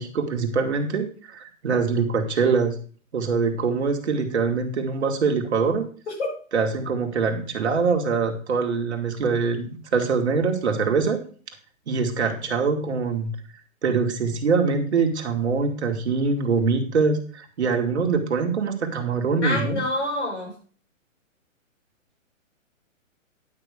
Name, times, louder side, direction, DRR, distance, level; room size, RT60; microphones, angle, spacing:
voice 1, 0.0-2.7 3.1-5.9 6.5-11.2 11.9-13.3 13.8-19.8, right 5 dB, 55° right, 3 dB, 2.0 m, -23 dB
voice 2, 19.4-20.5, left 2 dB, 55° left, -1 dB, 4.9 m, -27 dB
10.0 x 5.9 x 4.9 m, 0.42 s
hypercardioid pair, 180°, 40 cm